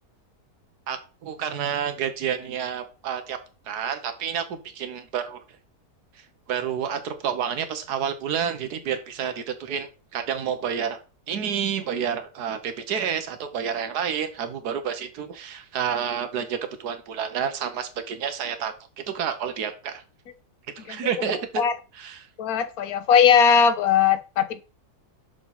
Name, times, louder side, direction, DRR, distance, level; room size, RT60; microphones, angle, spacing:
voice 1, 0.9-3.4 3.7-5.4 6.5-11.0 11.3-20.0 20.8-21.6 21.9-22.3, right 8 dB, 85° right, 1.5 m, -29 dB
voice 2, 22.4-24.6, left 7 dB, 70° left, 1.2 m, -19 dB
6.2 x 5.1 x 5.6 m
omnidirectional pair, 1.7 m